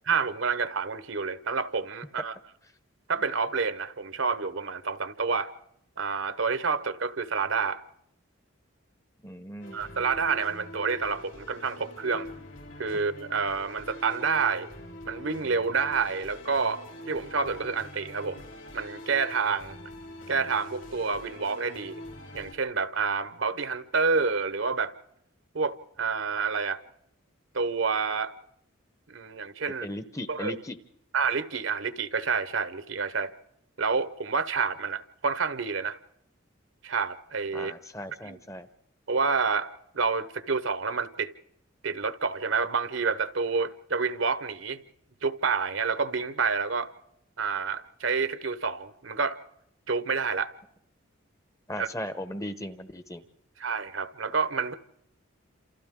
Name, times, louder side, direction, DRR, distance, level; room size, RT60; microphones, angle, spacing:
voice 1, 0.1-2.3 3.1-5.5 6.0-7.8 9.7-12.3 12.8-14.7 15.0-18.4 18.7-19.8 20.3-22.0 22.3-24.9 25.5-26.8 27.5-28.3 29.1-29.9 30.3-30.6 31.1-33.3 33.8-36.0 36.8-37.7 38.2-38.4 39.1-39.7 39.9-41.3 41.8-44.8 45.2-46.9 47.4-49.4 49.9-50.5 51.8-51.9 53.6-54.7, right 5 dB, 70° right, 1.0 m, -28 dB
voice 2, 9.2-9.8 29.8-30.8 37.5-38.7 51.7-53.2, left 1 dB, 15° left, 0.9 m, -37 dB
sound 1, 9.6-22.5, left 1 dB, 65° left, 4.0 m, -44 dB
28.0 x 28.0 x 3.7 m
head